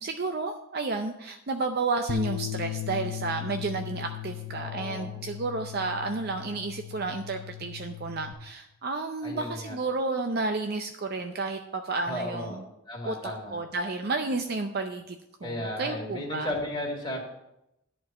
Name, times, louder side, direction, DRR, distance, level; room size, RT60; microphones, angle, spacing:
voice 1, 0.0-12.6 13.1-16.5, right 3 dB, 50° right, 6 dB, 0.6 m, -31 dB
sound 1, 2.1-8.3, left 12 dB, 75° left, 0.7 m, -37 dB
voice 2, 4.5-5.1 9.2-9.8 12.1-12.6 12.9-13.6 15.4-17.2, left 1 dB, 20° left, -2 dB, 2.2 m, -34 dB
11.0 x 4.6 x 7.5 m, 0.85 s
head